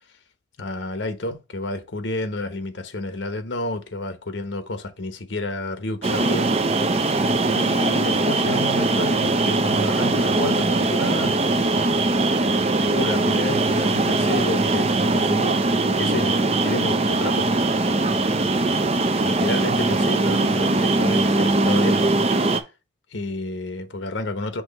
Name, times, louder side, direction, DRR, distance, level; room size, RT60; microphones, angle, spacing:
voice 1, 0.6-7.0 7.5-11.4 12.4-15.6 16.0-17.6 18.6-18.8 19.2-22.1 23.1-24.6, left 2 dB, 75° left, 1.0 m, -30 dB
sound 1, 6.0-22.6, right 2 dB, 35° right, 0.6 m, -21 dB
6.2 x 3.1 x 5.2 m
head